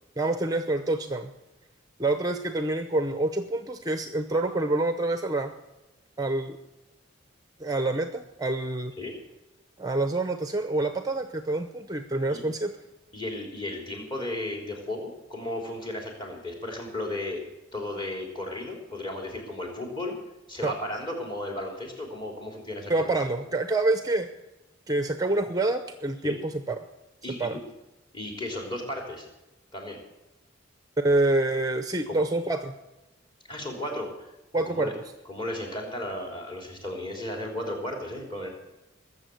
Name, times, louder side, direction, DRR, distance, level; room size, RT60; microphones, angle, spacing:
voice 1, 0.2-1.3 2.0-5.5 6.2-6.6 7.6-8.9 9.8-12.7 20.6-20.7 22.9-24.3 24.9-26.8 27.4-27.6 31.0-32.7 33.9-34.0 34.5-34.9, right 2 dB, 20° right, 8 dB, 0.7 m, -27 dB
voice 2, 13.1-17.4 17.7-20.1 20.5-23.1 26.2-26.4 27.2-27.6 28.1-29.3 29.7-30.0 32.1-32.2 33.5-34.1 34.7-34.9 35.2-38.5, left 1 dB, 25° left, 1 dB, 3.2 m, -34 dB
21.0 x 7.4 x 7.8 m, 0.99 s
head